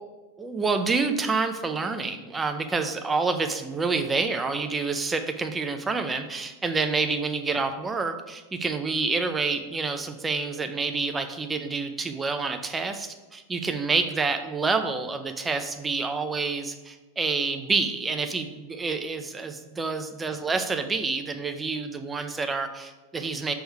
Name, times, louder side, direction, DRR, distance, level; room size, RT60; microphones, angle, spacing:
voice 1, 0.4-23.5, right 4 dB, 15° right, 7 dB, 0.6 m, -28 dB
6.2 x 3.5 x 4.6 m, 1.2 s
supercardioid pair, 120°, 0 cm